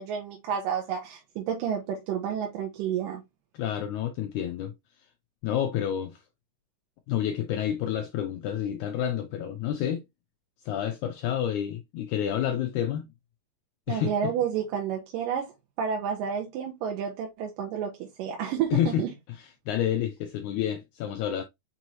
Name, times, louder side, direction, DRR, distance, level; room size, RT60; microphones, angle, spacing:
voice 1, 0.0-3.2 13.9-19.1, right 8 dB, 80° right, 2.4 m, -30 dB
voice 2, 3.5-4.7 5.4-6.2 7.1-10.0 10.6-13.1 13.9-14.3 18.7-19.0 19.4-21.4, left 10 dB, 90° left, 1.7 m, -29 dB
6.1 x 3.0 x 2.6 m
omnidirectional pair, 4.0 m